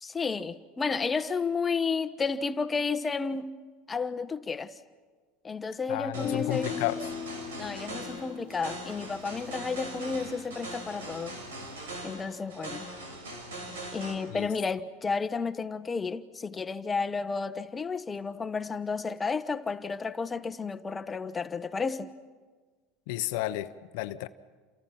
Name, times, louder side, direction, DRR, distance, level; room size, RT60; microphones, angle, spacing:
voice 1, 0.0-3.5 3.9-4.7 5.4-6.7 7.6-11.4 12.0-12.9 13.9-22.1, left 4 dB, 20° left, 1.3 m, -32 dB
voice 2, 5.9-7.0 14.3-14.5 23.1-24.3, left 17 dB, 70° left, 0.9 m, -32 dB
sound 1, 6.1-14.1, right 1 dB, 90° right, 5.9 m, -41 dB
Guitar, 6.2-10.2, left 9 dB, 40° left, 0.9 m, -39 dB
29.5 x 28.0 x 6.0 m
hypercardioid pair, 95°, 0 cm